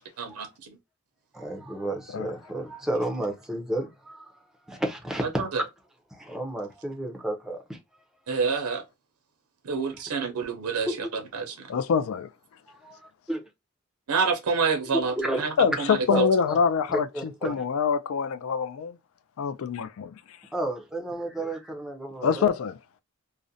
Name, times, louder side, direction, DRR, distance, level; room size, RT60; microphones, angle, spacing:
voice 1, 0.2-0.7 5.4-5.6 8.3-8.8 9.6-11.7 14.1-15.5 15.8-16.3, right 5 dB, 85° right, 0.6 m, -28 dB
voice 2, 1.3-4.4 4.7-5.3 5.6-5.7 6.1-7.8 9.7-9.8 10.9-11.1 12.7-13.0 13.3-13.4 15.2-15.8 16.1-16.6 16.9-17.6 20.5-22.5, right 1 dB, ahead, 0.5 m, -32 dB
voice 3, 11.7-12.3 15.6-19.0 19.4-20.2 22.2-22.8, left 6 dB, 65° left, 0.3 m, -25 dB
2.4 x 2.1 x 2.6 m
head